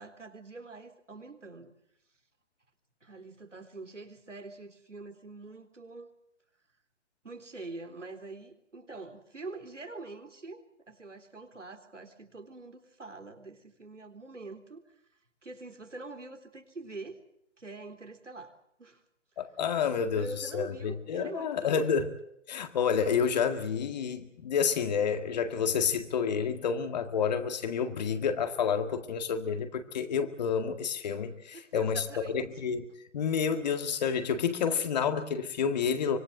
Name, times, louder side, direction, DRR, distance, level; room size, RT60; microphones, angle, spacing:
voice 1, 0.0-1.7 3.0-6.1 7.2-14.8 15.4-17.2 17.6-18.5 18.8-19.0 20.0-21.9 31.5-32.4, right 3 dB, 85° right, 6 dB, 3.8 m, -44 dB
voice 2, 19.4-22.0 22.5-32.0 32.3-32.8 33.1-36.2, left 6 dB, 35° left, 8 dB, 2.0 m, -29 dB
25.0 x 21.0 x 7.7 m, 0.75 s
figure-of-eight pair, 145°, 36 cm